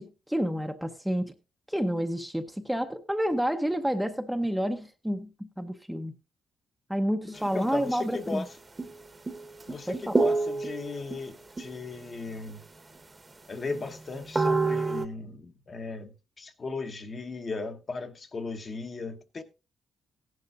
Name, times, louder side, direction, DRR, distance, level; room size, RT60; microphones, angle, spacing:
voice 1, 0.0-1.3 1.7-6.1 6.9-8.4 9.9-10.1, equal, ahead, 0.7 m, -29 dB
voice 2, 7.3-8.5 9.7-12.6 13.5-19.4, left 3 dB, 35° left, 1.1 m, -37 dB
sound 1, 7.3-8.0 8.3-8.4 8.8-9.0 9.3-11.2 11.6-12.0 12.5-12.6 12.9-13.0 13.7-15.1, right 3 dB, 20° right, 1.0 m, -29 dB
16.0 x 10.5 x 2.5 m
cardioid pair, 130°, 0 cm